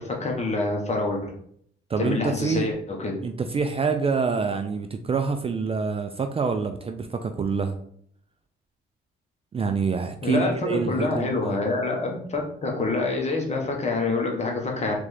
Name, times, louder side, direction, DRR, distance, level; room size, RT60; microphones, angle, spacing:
voice 1, 0.0-1.3 2.0-3.1 10.2-15.0, left 3 dB, 35° left, 0 dB, 1.3 m, -26 dB
voice 2, 1.9-2.7 3.2-7.7 9.5-11.6, right 5 dB, 30° right, 6 dB, 0.4 m, -26 dB
3.7 x 3.4 x 3.3 m, 0.65 s
cardioid pair, 90°, 20 cm